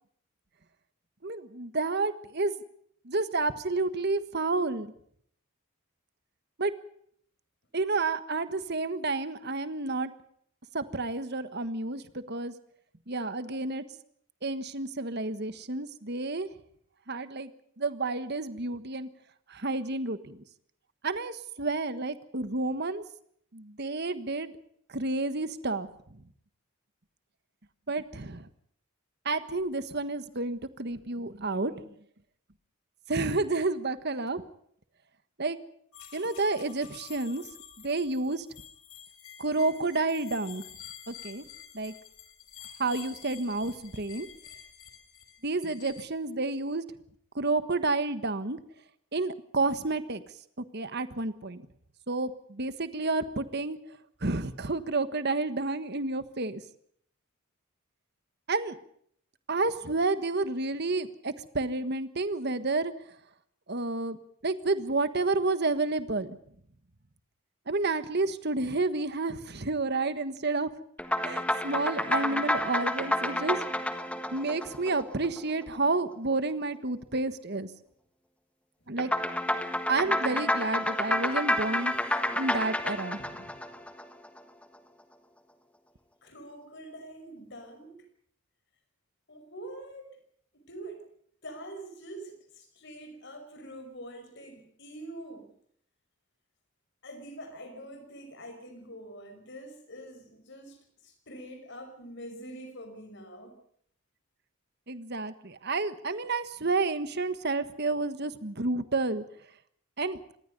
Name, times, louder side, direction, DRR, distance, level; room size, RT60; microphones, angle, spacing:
voice 1, 1.2-2.5 3.0-4.9 6.6-6.7 7.7-10.1 10.7-12.5 13.1-13.8 14.4-16.5 17.1-17.5 17.8-19.1 19.5-20.4 21.0-23.0 23.5-24.5 24.9-26.2 27.9-28.5 29.2-31.9 33.1-34.4 35.4-35.6 36.1-37.5 37.8-38.4 39.4-40.6 41.1-41.4 41.7-41.9 42.8-44.3 45.4-46.8 47.3-48.6 49.1-50.2 50.6-51.6 52.1-53.8 54.2-56.6 58.5-58.8 59.5-62.9 63.7-64.2 64.4-66.4 67.7-70.7 71.2-73.6 74.3-77.7 78.9-79.1 79.9-81.9 82.3-83.4 104.9-109.2 110.0-110.2, right 3 dB, 50° right, 12 dB, 1.4 m, -30 dB
sound 1, 35.9-46.0, left 9 dB, 85° left, 5.8 m, -49 dB
sound 2, 71.0-75.6 79.0-84.4, left 1 dB, 5° left, 1.5 m, -30 dB
voice 2, 86.2-88.1 89.3-90.1 90.5-91.1 91.4-95.5 97.0-103.6, right 1 dB, 55° left, 8 dB, 5.7 m, -45 dB
26.0 x 19.5 x 5.4 m, 0.65 s
head